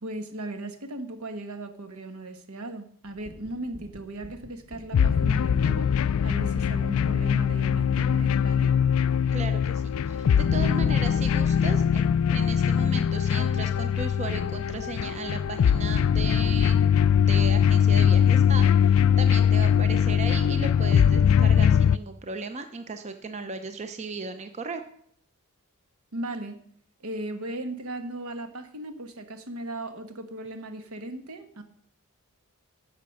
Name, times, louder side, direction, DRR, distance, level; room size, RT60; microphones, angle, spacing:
voice 1, 0.0-5.9 6.2-8.7 26.1-26.6 27.0-31.6, right 2 dB, 75° right, 8 dB, 1.3 m, -37 dB
sound 1, 3.0-19.2, equal, 90° right, 2.2 m, -49 dB
sound 2, 4.9-22.0, left 8 dB, 65° left, 0.3 m, -22 dB
voice 2, 9.3-12.0 12.3-16.8 17.3-24.8, right 4 dB, 30° right, 8 dB, 0.7 m, -36 dB
10.5 x 7.0 x 6.4 m, 0.64 s
head